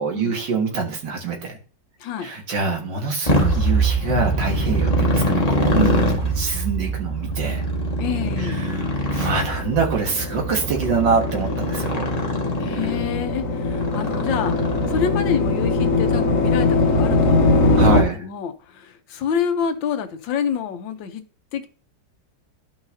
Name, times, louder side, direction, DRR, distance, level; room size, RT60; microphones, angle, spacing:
voice 1, 0.0-1.6 2.2-7.6 8.4-12.1 17.8-18.3, right 4 dB, 75° right, 2.2 m, -25 dB
voice 2, 2.0-2.3 8.0-8.7 12.6-14.6 14.9-21.2 21.5-21.7, left 7 dB, 85° left, 1.5 m, -28 dB
Motorcycle, 3.2-15.4, right 1 dB, 25° left, 1.1 m, -23 dB
sound 1, 9.3-18.0, left 2 dB, 50° left, 1.2 m, -21 dB
12.5 x 5.6 x 2.7 m
omnidirectional pair, 2.0 m